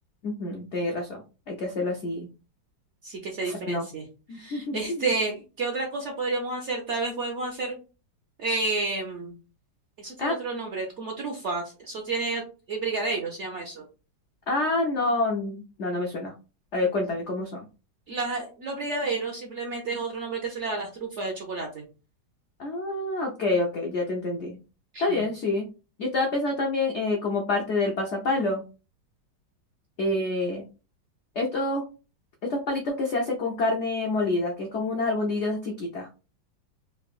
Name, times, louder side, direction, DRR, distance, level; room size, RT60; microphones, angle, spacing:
voice 1, 0.2-1.2 1.5-2.3 3.5-3.9 4.3-5.0 10.2-10.4 14.5-16.3 16.7-17.6 22.6-24.6 25.0-25.7 26.0-28.6 30.0-30.7 31.4-31.8 32.4-36.1, left 2 dB, 80° left, 1 dB, 0.6 m, -27 dB
voice 2, 3.0-4.0 4.3-7.8 8.4-9.4 10.0-12.4 12.7-13.9 18.1-21.8 24.9-25.2, right 3 dB, 60° right, 1 dB, 0.7 m, -30 dB
3.7 x 2.5 x 2.3 m, 0.32 s
omnidirectional pair, 1.9 m